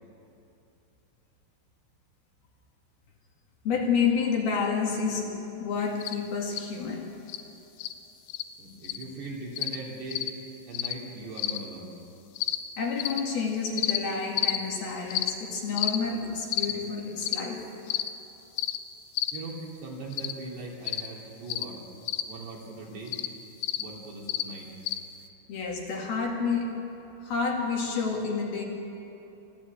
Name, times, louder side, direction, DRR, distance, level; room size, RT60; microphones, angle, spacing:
voice 1, 3.7-7.1 12.8-17.7 25.5-26.8 27.2-28.6, left 5 dB, 55° left, -1 dB, 3.6 m, -29 dB
sound 1, 6.0-6.2 6.5-6.7 7.3-7.4 7.8-7.9 8.3-8.4 8.8-9.0 9.6-9.8 10.1-10.3 10.7-10.9 11.4-11.6 12.4-12.6 13.0-13.2 13.8-14.0 14.4-14.6 15.1-15.3 15.8-16.0 16.5-16.7 17.2-17.4 17.9-18.1 18.6-18.8 19.2-19.4 20.1-20.3 20.9-21.1 21.5-21.7 22.1-22.2 23.1-23.3 23.6-23.8 24.3-24.4 24.9-25.0, left 13 dB, 90° left, 3.5 m, -29 dB
voice 2, 8.6-10.3 10.7-12.0 19.3-21.9 22.3-23.2 23.7-24.7, right 2 dB, 60° right, -3 dB, 5.1 m, -40 dB
25.0 x 16.0 x 8.8 m, 2.8 s
omnidirectional pair, 5.6 m